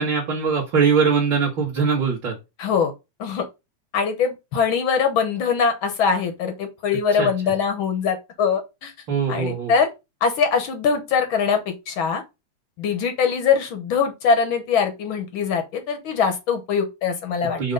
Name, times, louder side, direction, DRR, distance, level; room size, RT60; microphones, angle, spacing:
voice 1, 0.0-2.4 7.2-7.3 9.1-9.7 17.6-17.7, right 5 dB, 45° right, 1.9 m, -21 dB
voice 2, 2.6-2.9 3.2-3.4 3.9-8.9 9.3-9.9 10.2-12.2 12.8-17.7, left 6 dB, 70° left, 1.2 m, -22 dB
6.5 x 2.9 x 5.2 m
omnidirectional pair, 3.3 m